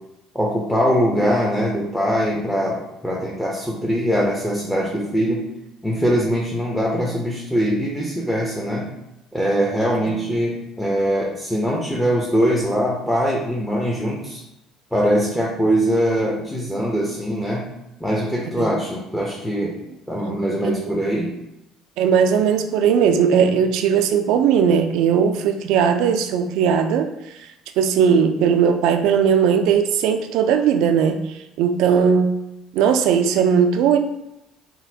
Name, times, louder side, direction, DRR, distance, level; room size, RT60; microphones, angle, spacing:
voice 1, 0.3-5.4 5.8-8.9 9.3-14.4 14.9-17.6 18.0-19.8 20.1-21.3, equal, 5° left, -3 dB, 0.8 m, -22 dB
voice 2, 20.6-21.0 22.0-27.1 27.8-32.3 32.7-34.0, right 7 dB, 70° right, 6 dB, 0.3 m, -18 dB
4.0 x 2.2 x 2.7 m, 0.90 s
hypercardioid pair, 70°, 0 cm